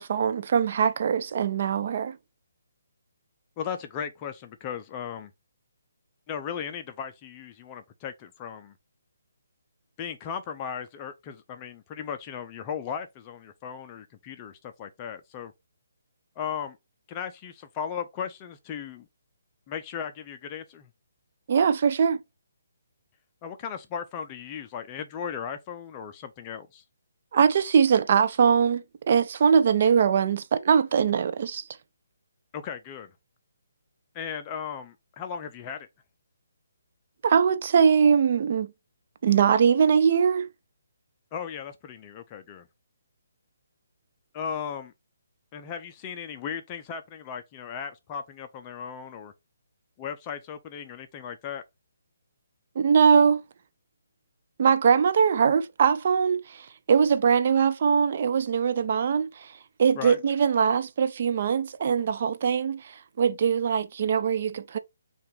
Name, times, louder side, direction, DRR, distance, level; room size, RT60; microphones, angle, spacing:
voice 1, 0.0-2.2 21.5-22.2 27.3-31.6 37.2-38.7 39.2-40.5 52.8-53.4 54.6-59.5 59.8-64.8, right 6 dB, 50° right, 0.3 m, -22 dB
voice 2, 3.6-5.3 6.3-8.7 10.0-15.5 16.4-16.8 17.1-19.1 19.7-20.9 23.4-26.8 32.5-33.1 34.1-35.9 41.3-42.7 44.3-44.9 45.5-49.3 50.0-51.6 60.0-60.2, left 7 dB, 25° left, 0.4 m, -36 dB
5.5 x 2.3 x 3.2 m
figure-of-eight pair, 145°, 0 cm